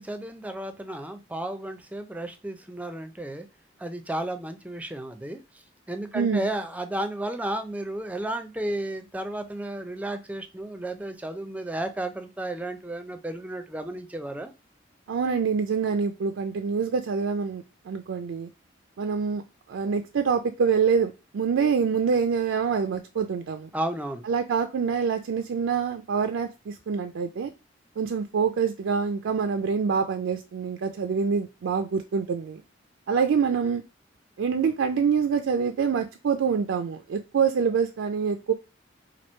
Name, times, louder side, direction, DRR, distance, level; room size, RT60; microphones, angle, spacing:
voice 1, 0.0-3.5 3.8-5.4 5.9-14.5 23.7-24.3, right 1 dB, 10° right, 7 dB, 0.4 m, -33 dB
voice 2, 6.1-6.5 15.1-18.5 19.0-19.4 19.7-23.7 24.3-27.5 28.0-32.6 33.1-33.8 34.4-38.5, right 6 dB, 80° right, 6 dB, 0.4 m, -26 dB
2.9 x 2.6 x 4.3 m, 0.27 s
head